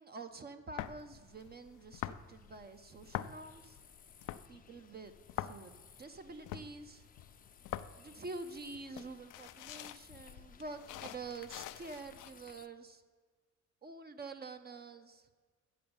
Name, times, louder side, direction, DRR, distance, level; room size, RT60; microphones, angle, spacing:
voice 1, 0.0-3.8 4.5-7.1 8.0-13.0 13.8-15.3, right 3 dB, 30° right, 8 dB, 0.6 m, -47 dB
sound 1, 0.8-12.3, left 13 dB, 90° left, 0.5 m, -46 dB
sound 2, 1.8-12.7, left 7 dB, 30° left, 0.5 m, -62 dB
7.8 x 6.7 x 7.1 m, 1.5 s
cardioid pair, 90°, 30 cm